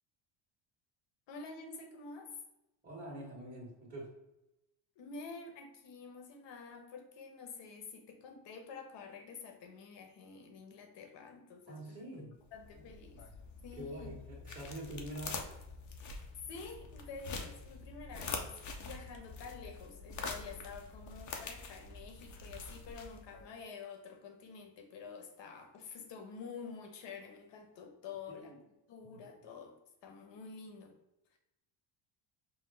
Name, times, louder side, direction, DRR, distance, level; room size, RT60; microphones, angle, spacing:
voice 1, 1.3-2.3 5.0-13.2 13.6-14.1 16.0-28.5 28.9-29.7 30.0-31.0, left 5 dB, 60° left, 4 dB, 1.0 m, -49 dB
voice 2, 2.8-4.1 11.7-12.3 12.8-12.9 13.7-15.4 28.4-28.6 29.0-29.2, right 1 dB, 15° right, -7 dB, 1.5 m, -45 dB
sound 1, 12.4-23.5, left 4 dB, 40° left, 0.6 m, -45 dB
5.6 x 2.0 x 3.3 m, 0.92 s
cardioid pair, 120°, 48 cm